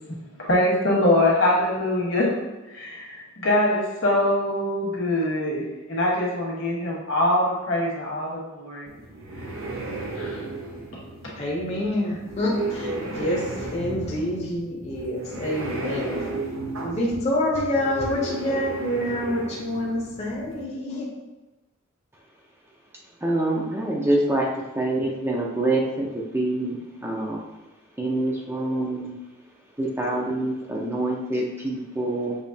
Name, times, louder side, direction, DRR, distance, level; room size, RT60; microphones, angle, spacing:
voice 1, 0.4-2.4 2.7-5.6 5.9-8.9 10.1-10.4 11.2-11.3, left 1 dB, 65° left, -3 dB, 1.4 m, -23 dB
sound 1, 8.9-20.6, right 2 dB, 90° right, 0.8 m, -34 dB
voice 2, 11.4-16.3 16.8-21.1, left 1 dB, 30° left, -4 dB, 0.7 m, -27 dB
voice 3, 23.2-24.5 24.7-27.4 28.0-29.1 29.8-32.4, right 1 dB, 10° right, -2 dB, 0.5 m, -26 dB
6.3 x 3.1 x 2.7 m, 1.1 s
head